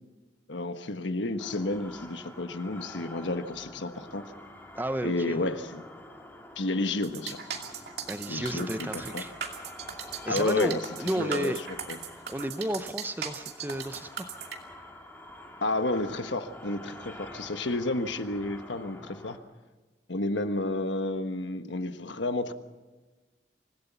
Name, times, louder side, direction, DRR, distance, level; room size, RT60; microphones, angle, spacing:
voice 1, 0.5-4.2 5.0-5.8 6.6-7.4 8.3-9.2 10.3-10.8 11.0-11.5 11.9-12.0 15.6-19.4 20.1-22.5, left 2 dB, 90° left, 9 dB, 1.3 m, -31 dB
sound 1, 1.4-19.4, left 1 dB, 10° left, 2.2 m, -47 dB
voice 2, 4.7-5.4 8.1-9.3 10.3-11.6 12.3-14.3, right 1 dB, 10° right, 11 dB, 0.6 m, -32 dB
sound 2, 7.0-14.6, right 7 dB, 60° right, 2.6 m, -38 dB
25.5 x 16.5 x 6.9 m, 1.3 s
head